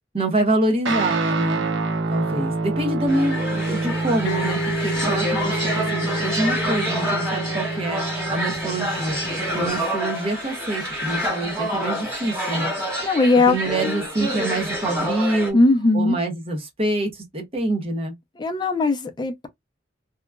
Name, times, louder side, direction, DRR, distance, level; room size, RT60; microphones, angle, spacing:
voice 1, 0.1-1.7 2.1-9.2 9.5-12.7 13.5-15.6 15.9-18.2, right 1 dB, 30° right, 0.9 m, -26 dB
Guitar, 0.8-9.7, right 3 dB, 70° right, 0.8 m, -27 dB
sound 1, 3.1-15.5, equal, 15° right, 1.6 m, -27 dB
sound 2, 4.3-11.8, left 1 dB, 90° left, 0.7 m, -34 dB
voice 2, 13.0-13.6 15.5-16.2 18.4-19.5, left 2 dB, 25° left, 0.5 m, -18 dB
2.9 x 2.3 x 2.2 m
head